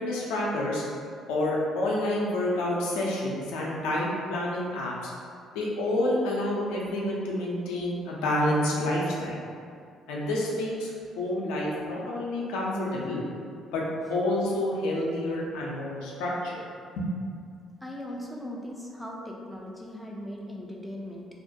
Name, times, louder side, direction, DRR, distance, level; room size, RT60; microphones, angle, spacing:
voice 1, 0.0-0.8 1.3-5.1 5.5-9.4 10.1-13.2 13.7-13.8 14.1-16.7 17.0-17.1, left 1 dB, 75° left, -4 dB, 0.4 m, -28 dB
voice 2, 17.8-21.3, left 1 dB, 5° left, -2 dB, 0.4 m, -39 dB
2.4 x 2.1 x 2.6 m, 2.2 s
hypercardioid pair, 50°, 0 cm